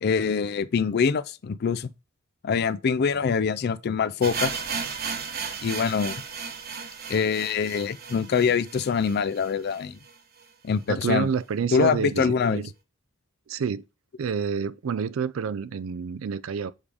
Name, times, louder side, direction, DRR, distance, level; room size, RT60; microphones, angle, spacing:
voice 1, 0.0-1.9 2.4-4.6 5.6-6.2 7.1-10.0 10.6-11.3 11.7-12.6, left 6 dB, 50° left, 0.4 m, -24 dB
sound 1, 4.2-10.1 10.4-10.5 10.7-10.8 11.4-11.5, right 6 dB, 45° right, 1.1 m, -35 dB
voice 2, 10.9-12.7 13.5-13.8 14.2-16.7, right 6 dB, 70° right, 0.4 m, -28 dB
7.2 x 4.9 x 3.4 m
head